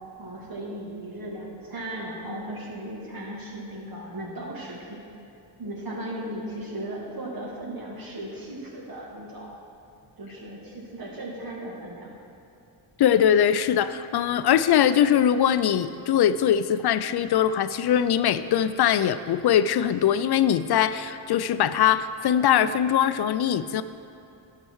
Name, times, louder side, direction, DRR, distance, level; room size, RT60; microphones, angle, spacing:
voice 1, 0.2-5.0 5.6-9.6 10.2-12.1, right 1 dB, 50° right, -2 dB, 2.3 m, -36 dB
voice 2, 13.0-23.8, left 9 dB, 60° left, 13 dB, 0.5 m, -21 dB
11.0 x 6.8 x 4.7 m, 2.7 s
cardioid pair, 65°, 46 cm